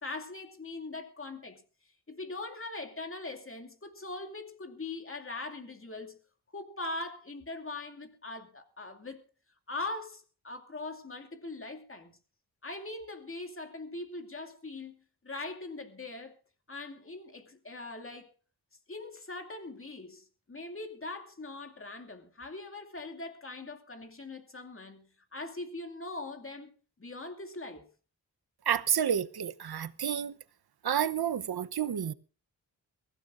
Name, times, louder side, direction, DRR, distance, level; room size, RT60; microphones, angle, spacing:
voice 1, 0.0-1.6 2.1-6.2 6.5-9.2 9.7-12.1 12.6-14.9 15.2-16.3 16.7-18.3 18.9-25.1 25.3-26.7 27.0-27.9, left 2 dB, 30° left, 2.5 m, -41 dB
voice 2, 28.7-30.3 30.8-32.1, right 9 dB, 65° right, 0.9 m, -30 dB
23.0 x 15.0 x 2.6 m
wide cardioid pair, 80°, 41 cm